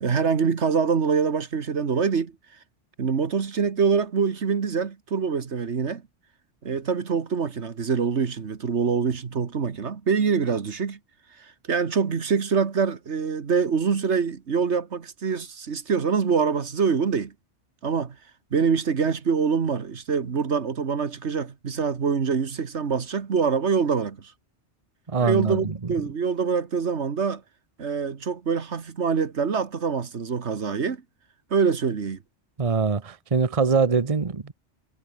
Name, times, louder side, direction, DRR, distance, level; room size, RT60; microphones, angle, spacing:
voice 1, 0.0-2.3 3.0-6.0 6.6-11.0 11.4-17.3 17.8-18.2 18.5-24.3 25.2-27.4 27.8-31.0 31.5-32.2, right 5 dB, 70° right, 1.8 m, -25 dB
voice 2, 25.1-25.7 32.6-34.5, right 5 dB, 30° right, 1.1 m, -23 dB
omnidirectional pair, 1.2 m